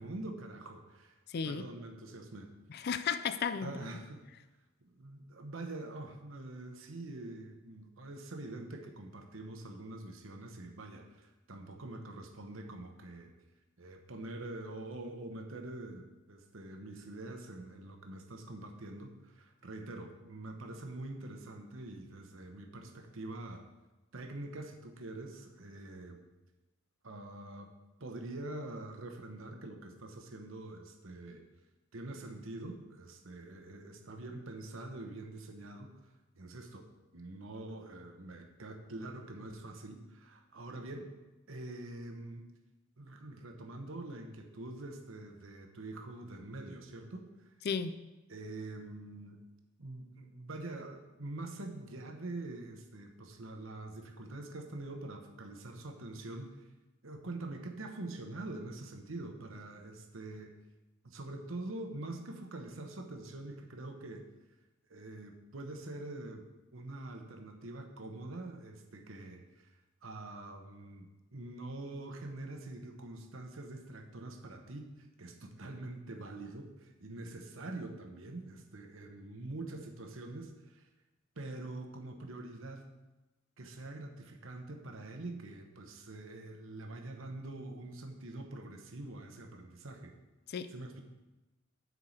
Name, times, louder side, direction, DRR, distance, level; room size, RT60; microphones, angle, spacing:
voice 1, 0.0-1.2 1.5-2.5 3.6-4.2 4.8-13.3 13.8-23.6 24.1-26.2 27.0-27.7 28.0-31.4 31.9-35.9 36.3-36.9 37.1-41.1 41.5-42.5 43.0-47.5 48.3-49.4 49.8-56.6 57.0-60.5 61.0-64.3 64.9-66.4 66.7-69.7 70.0-80.9 81.4-82.9 83.6-90.1 90.7-91.0, right 2 dB, 75° right, 4 dB, 1.0 m, -45 dB
voice 2, 1.3-1.6 2.7-3.7 47.6-47.9 90.5-90.7, left 6 dB, 50° left, 12 dB, 0.4 m, -34 dB
8.0 x 4.8 x 7.1 m, 1.1 s
head